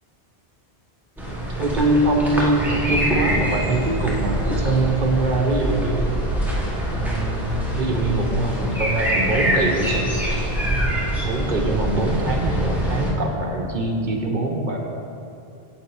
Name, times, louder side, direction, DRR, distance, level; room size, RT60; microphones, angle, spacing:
sound 1, 1.2-13.1, equal, ahead, 1.3 m, -24 dB
voice 1, 1.2-6.2 6.9-10.1 11.2-14.8, right 2 dB, 50° right, 1 dB, 1.2 m, -23 dB
7.9 x 7.7 x 4.8 m, 2.6 s
omnidirectional pair, 1.1 m